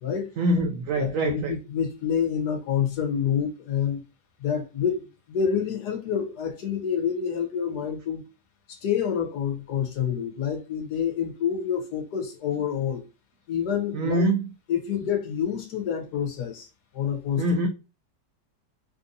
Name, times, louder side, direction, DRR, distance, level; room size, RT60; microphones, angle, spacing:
voice 1, 0.4-1.5 13.9-14.4 17.4-17.7, right 1 dB, 70° right, 0.8 m, -24 dB
voice 2, 0.9-4.0 4.4-8.2 8.7-13.0 13.5-14.3 14.7-16.7 16.9-17.5, left 8 dB, 70° left, 1.4 m, -27 dB
3.5 x 2.6 x 2.6 m
omnidirectional pair, 1.9 m